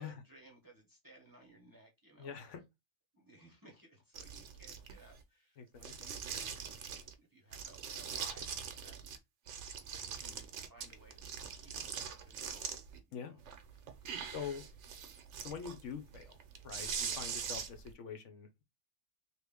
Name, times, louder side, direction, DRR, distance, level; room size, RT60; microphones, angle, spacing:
voice 1, 0.0-2.4 3.1-6.9 7.2-9.1 9.8-11.3 11.5-12.8 13.1-13.4 13.8-14.3, right 2 dB, 20° right, 0.8 m, -60 dB
voice 2, 2.2-2.6 5.6-6.1 13.1-13.4 14.3-14.6 15.4-16.4 16.6-18.6, left 7 dB, 75° left, 1.0 m, -45 dB
sound 1, 4.1-5.2 5.8-7.1 7.5-9.2 9.5-13.0 13.4-17.9, right 7 dB, 70° right, 0.9 m, -43 dB
3.0 x 2.4 x 3.5 m
omnidirectional pair, 1.3 m